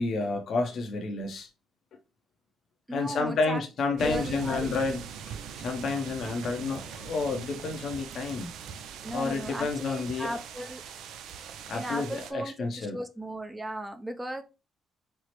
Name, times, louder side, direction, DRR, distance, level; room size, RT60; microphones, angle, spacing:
voice 1, 0.0-1.5 2.9-8.5 9.1-10.4 11.7-13.0, left 3 dB, 65° left, 0.6 m, -30 dB
voice 2, 2.9-3.6 3.9-4.7 9.0-10.8 11.7-14.4, right 1 dB, 10° right, 0.5 m, -36 dB
sound 1, 4.0-12.3, right 7 dB, 85° right, 0.4 m, -41 dB
4.3 x 2.0 x 2.9 m
cardioid pair, 90°, 0 cm